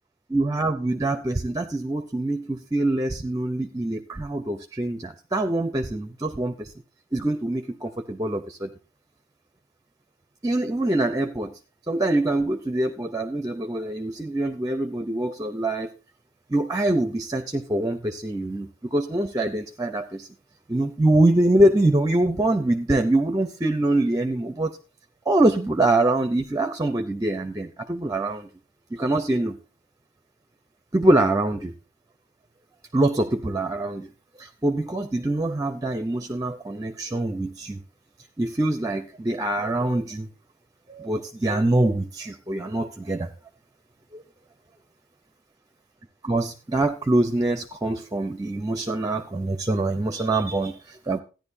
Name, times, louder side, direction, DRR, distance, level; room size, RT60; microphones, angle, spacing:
voice 1, 0.3-6.7 7.1-8.7 10.4-11.6 11.9-15.9 16.5-20.3 20.7-24.8 25.3-28.5 28.9-29.6 30.9-31.7 32.9-34.1 34.4-37.8 38.4-40.3 40.9-43.3 44.1-44.2 46.2-51.2, right 1 dB, 15° right, 9 dB, 0.6 m, -24 dB
14.5 x 10.5 x 2.7 m, 0.33 s
head